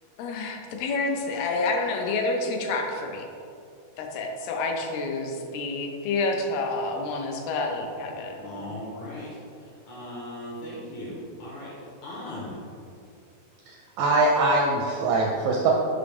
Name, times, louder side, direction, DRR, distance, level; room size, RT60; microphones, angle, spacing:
voice 1, 0.2-3.3 4.0-8.7, left 3 dB, 85° left, 2 dB, 2.6 m, -29 dB
voice 2, 8.4-9.4 9.9-11.7 12.0-12.6, left 1 dB, 70° left, -6 dB, 1.9 m, -38 dB
voice 3, 13.7-15.7, right 2 dB, 80° right, -2 dB, 1.9 m, -23 dB
6.6 x 4.9 x 3.5 m, 2.6 s
omnidirectional pair, 4.4 m